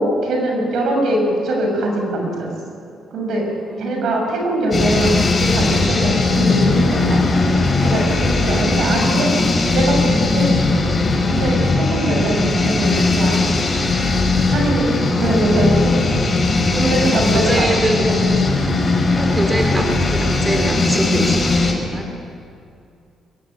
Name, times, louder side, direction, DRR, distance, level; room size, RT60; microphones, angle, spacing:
voice 1, 0.0-2.5 3.1-3.5 3.8-9.3 9.7-10.5 11.3-13.5 14.5-14.8 15.2-16.2 16.7-17.7 18.2-18.6, right 1 dB, 70° right, 1 dB, 6.6 m, -22 dB
voice 2, 3.7-4.1 15.0-15.6 16.7-18.1 19.1-22.1, right 1 dB, 20° right, 2 dB, 3.2 m, -24 dB
sound 1, 4.7-21.7, left 3 dB, 30° left, 5.0 m, -18 dB
23.0 x 14.5 x 9.3 m, 2.4 s
cardioid pair, 90°, 0 cm